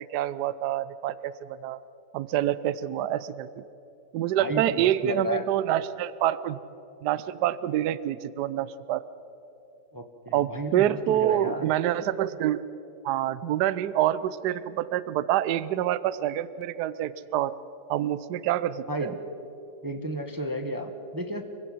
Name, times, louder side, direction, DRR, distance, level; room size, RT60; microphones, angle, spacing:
voice 1, 0.0-1.3 1.6-1.8 2.1-3.5 4.1-6.6 7.0-9.0 10.3-12.6 13.0-17.5 17.9-19.1, right 12 dB, 70° right, 16 dB, 1.2 m, -27 dB
voice 2, 4.4-5.4 9.9-11.7 18.9-19.2 19.8-21.4, equal, 15° right, 6 dB, 0.9 m, -32 dB
25.0 x 16.0 x 7.8 m, 2.8 s
omnidirectional pair, 1.9 m